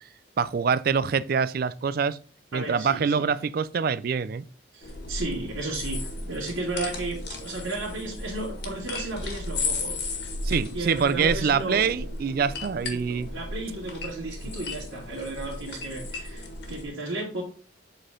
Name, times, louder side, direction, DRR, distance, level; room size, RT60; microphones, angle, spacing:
voice 1, 0.4-2.2 2.5-4.5 10.4-13.3, right 6 dB, 45° right, 0.3 m, -25 dB
voice 2, 2.5-3.3 4.7-10.0 10.6-12.1 12.9-17.4, right 2 dB, 80° right, 2.4 m, -34 dB
sound 1, 4.8-16.9, left 2 dB, 55° left, 1.6 m, -35 dB
7.7 x 4.2 x 3.7 m
head